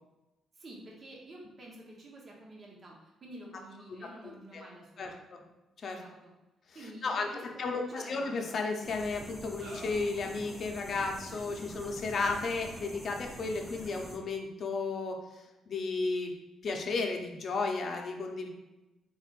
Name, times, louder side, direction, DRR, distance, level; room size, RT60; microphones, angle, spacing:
voice 1, 0.6-5.2 5.9-6.3 6.7-8.6, right 1 dB, 45° right, -3 dB, 1.0 m, -49 dB
voice 2, 4.0-4.6 5.0-5.4 5.8-6.0 7.0-15.2 15.7-16.3 16.6-18.5, left 3 dB, 55° left, 3 dB, 0.6 m, -34 dB
sound 1, 8.2-8.6 9.6-10.1, right 1 dB, 70° right, 1.5 m, -49 dB
sound 2, 8.8-14.2, right 1 dB, 15° right, 0.5 m, -46 dB
3.9 x 3.4 x 2.5 m, 1.0 s
cardioid pair, 90°, 0 cm